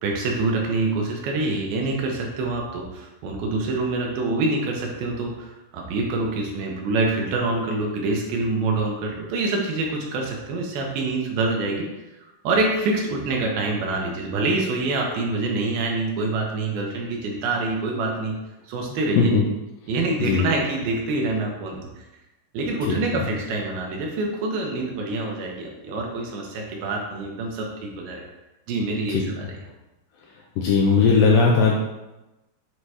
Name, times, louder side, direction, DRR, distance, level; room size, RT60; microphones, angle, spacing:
voice 1, 0.0-11.9 12.2-18.4 18.7-19.3 19.9-22.0 22.5-28.2 28.7-29.6, right 3 dB, 75° right, 0 dB, 2.5 m, -26 dB
voice 2, 30.6-31.8, left 5 dB, 80° left, -2 dB, 2.1 m, -18 dB
7.6 x 2.8 x 4.7 m, 0.98 s
omnidirectional pair, 4.6 m